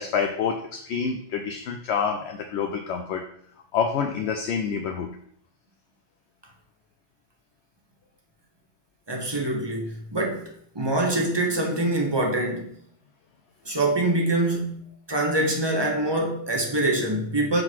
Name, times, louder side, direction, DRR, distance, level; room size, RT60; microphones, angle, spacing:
voice 1, 0.0-3.2 3.7-5.2, left 6 dB, 70° left, 0.8 m, -27 dB
voice 2, 9.1-12.8 13.6-17.6, right 1 dB, 25° right, 1.1 m, -25 dB
6.5 x 3.8 x 4.5 m
omnidirectional pair, 1.2 m